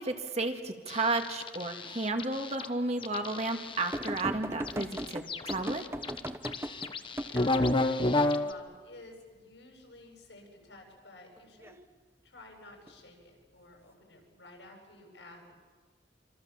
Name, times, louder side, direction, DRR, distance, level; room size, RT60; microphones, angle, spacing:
voice 1, 0.0-5.8, right 2 dB, 40° right, 4 dB, 2.1 m, -33 dB
sound 1, 0.9-2.7 3.0-4.2 4.7-8.5, left 2 dB, 30° left, 1.1 m, -31 dB
sound 2, 3.9-7.9 11.4-11.7 12.9-13.0, right 1 dB, 15° right, 1.0 m, -38 dB
voice 2, 6.9-11.7 12.2-15.5, left 1 dB, 85° left, 2 dB, 8.0 m, -51 dB
27.0 x 26.0 x 7.5 m, 1.4 s
head